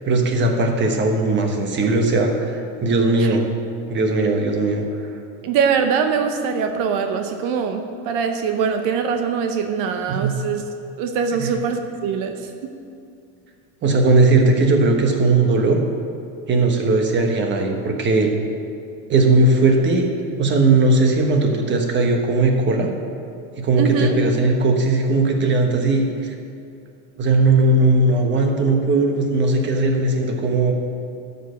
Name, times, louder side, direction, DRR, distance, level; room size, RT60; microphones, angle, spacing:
voice 1, 0.1-3.4 3.9-4.8 10.1-10.3 11.3-11.5 13.8-15.8 16.5-18.3 19.1-20.1 20.4-22.9 23.6-26.3 27.2-30.7, right 2 dB, 25° right, 3 dB, 1.2 m, -18 dB
voice 2, 5.4-10.6 11.0-12.4 23.8-24.2, right 6 dB, 55° right, 6 dB, 0.9 m, -22 dB
12.5 x 5.4 x 6.5 m, 2.5 s
supercardioid pair, 150°, 40 cm